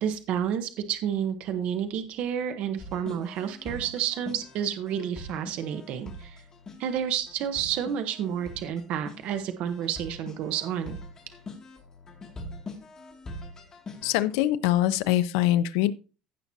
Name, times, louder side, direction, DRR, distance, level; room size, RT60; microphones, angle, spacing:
voice 1, 0.0-6.4 6.8-11.0, right 9 dB, 55° right, 8 dB, 1.0 m, -30 dB
sound 1, 2.8-14.3, left 1 dB, 25° left, 2.4 m, -43 dB
voice 2, 14.0-15.9, left 14 dB, 85° left, 12 dB, 0.7 m, -23 dB
15.5 x 6.0 x 2.8 m, 0.33 s
cardioid pair, 150°, 3 cm